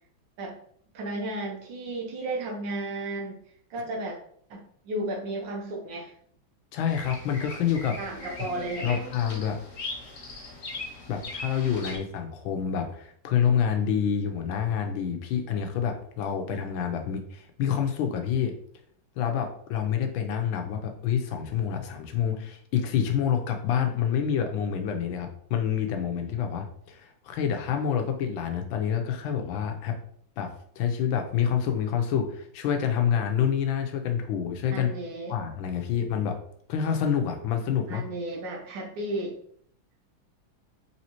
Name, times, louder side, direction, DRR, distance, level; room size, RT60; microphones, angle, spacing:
voice 1, 0.9-3.4 3.7-4.2 4.5-6.2 8.0-9.0 34.7-35.4 37.9-39.4, right 1 dB, 70° right, 0 dB, 1.3 m, -33 dB
voice 2, 6.7-8.0 8.8-9.6 11.1-18.5 19.2-30.0 30.4-34.9 35.3-36.4 36.7-38.0, left 8 dB, 80° left, 5 dB, 1.4 m, -27 dB
Bird vocalization bird call bird song, 6.9-12.0, left 2 dB, 55° left, 0.7 m, -39 dB
4.2 x 3.4 x 2.9 m, 0.62 s
omnidirectional pair, 2.2 m